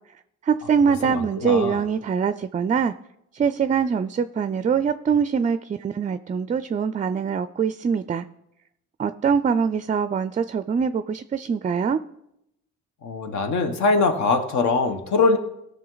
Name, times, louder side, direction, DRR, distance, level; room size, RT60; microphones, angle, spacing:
voice 1, 0.4-2.9 3.3-8.3 9.0-12.0, right 6 dB, 25° right, 12 dB, 0.4 m, -23 dB
voice 2, 1.0-1.8 13.0-15.4, left 4 dB, 70° left, 6 dB, 1.4 m, -22 dB
16.0 x 6.5 x 3.9 m, 0.82 s
cardioid pair, 90°, 30 cm